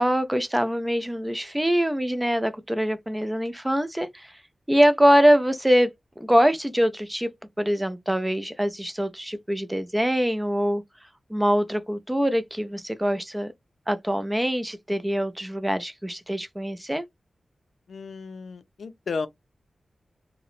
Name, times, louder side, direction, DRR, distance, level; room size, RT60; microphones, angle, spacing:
voice 1, 0.0-4.3 4.7-5.9 6.2-7.3 7.6-10.8 11.3-13.5 13.9-17.0, equal, 10° right, 0.4 m, -23 dB
voice 2, 17.9-19.3, left 4 dB, 85° left, 0.4 m, -33 dB
2.9 x 2.0 x 2.4 m
wide cardioid pair, 105°, 0 cm